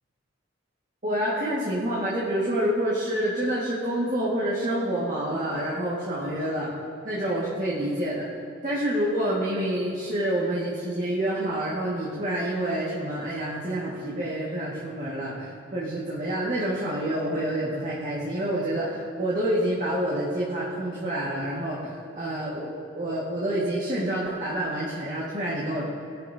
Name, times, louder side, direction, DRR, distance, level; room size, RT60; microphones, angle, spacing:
voice 1, 1.0-6.7 7.0-8.3 8.6-21.9 22.2-25.8, right 1 dB, 40° right, -7 dB, 2.0 m, -28 dB
22.0 x 12.5 x 2.9 m, 2.7 s
head